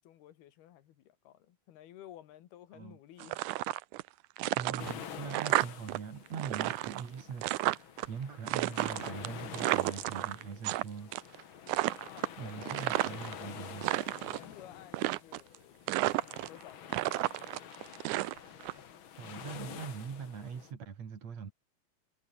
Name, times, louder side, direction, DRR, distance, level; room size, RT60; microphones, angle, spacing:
voice 1, 0.0-3.5 12.1-13.0 14.3-18.0, left 12 dB, 85° left, 3.5 m, -54 dB
sound 1, 3.2-4.1 4.4-6.0 6.3-8.1 8.5-10.8 11.1-11.4 11.7-13.3 13.7-14.4 14.9-15.6 15.9-16.6 16.9-18.7, right 18 dB, 85° right, 1.8 m, -32 dB
voice 2, 4.5-11.4 12.4-13.9 19.2-21.5, right 6 dB, 45° right, 3.8 m, -42 dB
sound 2, 4.8-20.7, left 8 dB, 55° left, 1.4 m, -48 dB
omnidirectional pair, 4.4 m